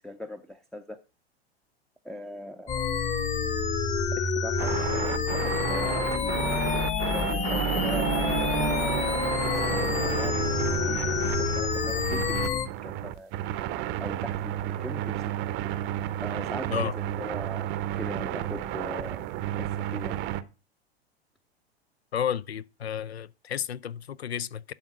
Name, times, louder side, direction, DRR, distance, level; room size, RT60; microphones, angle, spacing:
voice 1, 0.0-1.0 2.0-2.8 4.1-6.6 7.1-9.0 9.5-13.3 14.0-15.4 16.2-17.7 17.9-19.2 19.5-20.2, equal, ahead, 0.6 m, -40 dB
sound 1, 2.7-12.7, left 5 dB, 20° left, 1.0 m, -28 dB
sound 2, 4.6-20.4, right 13 dB, 35° right, 0.7 m, -32 dB
Bowed string instrument, 7.2-11.9, right 11 dB, 75° right, 0.5 m, -34 dB
voice 2, 22.1-24.7, left 9 dB, 80° left, 0.6 m, -32 dB
11.5 x 4.0 x 6.0 m
figure-of-eight pair, 90°, 32 cm